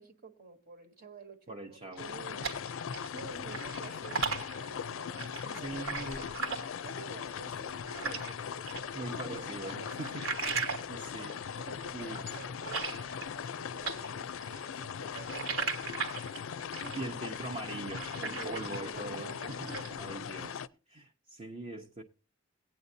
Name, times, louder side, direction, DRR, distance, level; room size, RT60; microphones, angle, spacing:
voice 1, 0.0-2.6 3.1-6.4 6.8-10.8 11.5-16.4 16.7-17.3 18.1-20.1, right 4 dB, 50° right, 1.3 m, -50 dB
voice 2, 1.5-2.1 5.5-6.3 8.9-10.3 10.9-11.5 11.9-12.2 17.0-19.6 20.0-20.6 20.9-22.0, right 2 dB, 30° right, 0.7 m, -42 dB
sound 1, 1.9-3.2 3.5-8.3 8.7-13.6 13.8-19.0 19.3-20.0, right 5 dB, 65° right, 1.4 m, -38 dB
sound 2, 2.0-20.7, left 7 dB, 65° left, 0.4 m, -40 dB
18.5 x 8.9 x 2.7 m
head